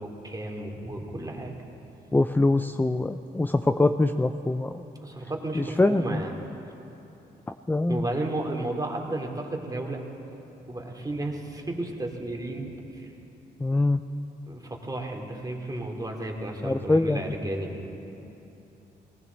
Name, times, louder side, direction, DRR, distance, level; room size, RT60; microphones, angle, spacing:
voice 1, 0.0-1.5 3.7-3.8 5.0-6.3 7.9-10.0 10.7-13.1 14.5-17.9, right 1 dB, 20° right, 1 dB, 2.6 m, -33 dB
voice 2, 2.1-4.8 5.5-6.2 7.7-8.1 13.6-14.0 16.6-17.2, left 2 dB, 10° left, 9 dB, 0.5 m, -23 dB
19.0 x 16.0 x 4.0 m, 3.0 s
supercardioid pair, 60°, 18 cm